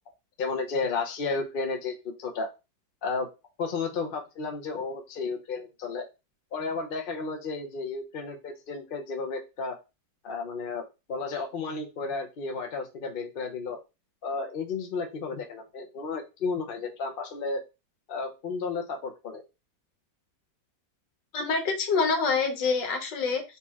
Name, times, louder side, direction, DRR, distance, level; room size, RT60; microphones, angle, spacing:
voice 1, 0.4-2.5 3.0-3.3 3.6-6.1 6.5-9.8 10.2-10.8 11.1-13.8 14.2-17.6 18.1-19.4, left 4 dB, 50° left, 3 dB, 0.6 m, -32 dB
voice 2, 21.3-23.4, left 4 dB, 75° left, 4 dB, 1.6 m, -26 dB
4.3 x 3.0 x 3.5 m, 0.27 s
omnidirectional pair, 2.0 m